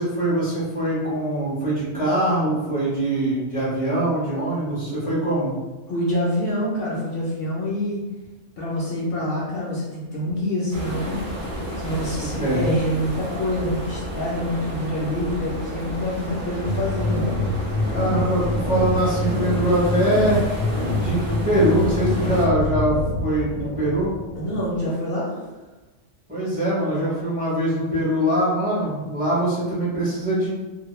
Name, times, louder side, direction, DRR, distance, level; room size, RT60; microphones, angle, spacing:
voice 1, 0.0-5.5 12.1-12.8 17.9-20.4 21.0-24.1 26.3-30.5, right 1 dB, 10° right, -8 dB, 0.6 m, -23 dB
voice 2, 5.9-8.0 8.6-11.2 11.8-17.2 24.4-25.4, left 1 dB, 60° left, -6 dB, 0.7 m, -26 dB
sound 1, 10.7-22.4, equal, 50° right, 0.7 m, -31 dB
sound 2, 16.7-24.9, left 2 dB, 85° left, 0.9 m, -26 dB
2.1 x 2.0 x 3.0 m, 1.1 s
omnidirectional pair, 1.3 m